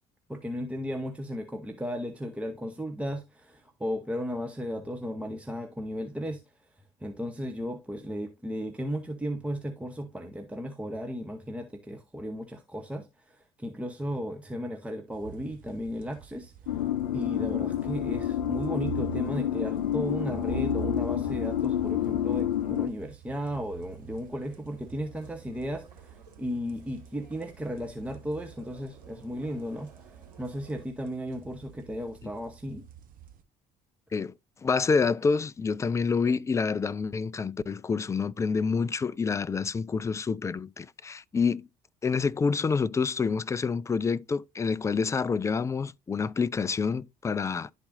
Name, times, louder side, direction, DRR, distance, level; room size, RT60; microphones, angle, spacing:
voice 1, 0.3-6.4 7.0-16.5 17.1-29.9 30.4-32.9, equal, 5° right, 0.9 m, -35 dB
sound 1, 15.1-33.4, right 10 dB, 45° right, 1.0 m, -45 dB
sound 2, 16.7-22.9, left 11 dB, 80° left, 0.5 m, -29 dB
sound 3, 23.4-30.9, right 4 dB, 85° right, 2.0 m, -57 dB
voice 2, 34.6-41.7 42.0-47.7, left 5 dB, 15° left, 0.3 m, -27 dB
11.5 x 4.1 x 2.6 m
figure-of-eight pair, 55°, 21 cm